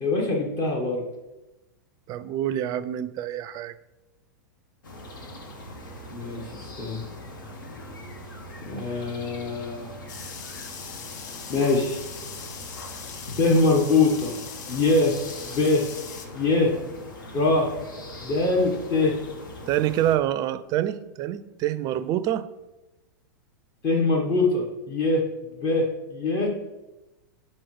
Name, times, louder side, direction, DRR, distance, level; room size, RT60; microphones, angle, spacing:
voice 1, 0.0-1.0 6.1-6.5 6.8-7.0 8.7-9.9 11.5-12.0 13.4-14.3 14.7-15.1 15.5-15.8 16.3-16.7 17.3-17.7 18.2-19.1 23.8-25.2 25.6-26.5, left 3 dB, 40° left, 1 dB, 1.1 m, -23 dB
voice 2, 2.1-3.7 19.7-22.4, right 12 dB, 35° right, 14 dB, 0.4 m, -26 dB
sound 1, 4.8-20.2, left 1 dB, 80° left, 1.0 m, -41 dB
sound 2, 10.1-16.3, left 6 dB, 60° left, 0.7 m, -40 dB
7.7 x 4.3 x 3.1 m, 1.0 s
hypercardioid pair, 100°, 11 cm